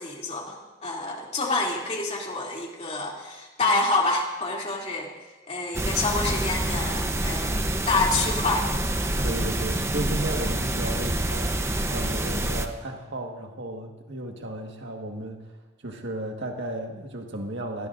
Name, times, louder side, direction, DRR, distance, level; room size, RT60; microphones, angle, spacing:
voice 1, 0.0-5.1 5.5-8.7, left 3 dB, 35° left, -2 dB, 2.9 m, -27 dB
sound 1, 5.7-12.7, right 1 dB, 15° right, 0.9 m, -27 dB
voice 2, 9.2-15.6 15.8-17.9, right 1 dB, 80° right, 1 dB, 1.7 m, -34 dB
25.0 x 19.0 x 2.6 m, 1.3 s
head